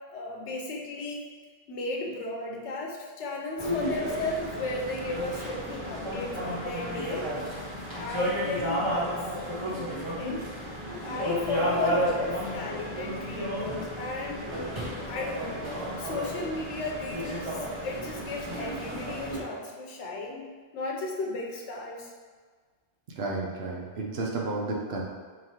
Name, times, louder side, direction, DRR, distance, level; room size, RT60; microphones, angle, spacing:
voice 1, 0.1-1.3 1.7-7.3 7.9-9.1 9.5-10.5 11.0-14.5 15.0-15.6 16.0-20.5 20.7-22.1, left 2 dB, 85° left, 0 dB, 1.0 m, -35 dB
sound 1, 3.6-19.4, equal, 30° right, 0.9 m, -32 dB
voice 2, 23.2-25.0, right 3 dB, 65° right, -2 dB, 1.0 m, -32 dB
4.9 x 2.9 x 2.9 m, 1.5 s
omnidirectional pair, 1.2 m